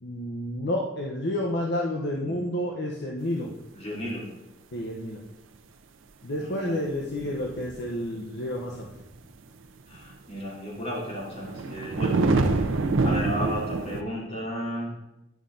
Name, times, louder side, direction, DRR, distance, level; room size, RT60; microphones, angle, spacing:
voice 1, 0.0-3.5 4.7-5.2 6.2-8.9, left 1 dB, 60° left, -1 dB, 0.8 m, -30 dB
voice 2, 3.7-4.2 6.3-6.8 9.9-12.5 13.0-14.9, equal, 35° left, -5 dB, 3.0 m, -34 dB
sound 1, 7.1-8.2 8.7-9.0 10.0-10.1 11.2-14.0, right 3 dB, 90° right, 0.6 m, -26 dB
9.6 x 5.6 x 3.8 m, 0.92 s
head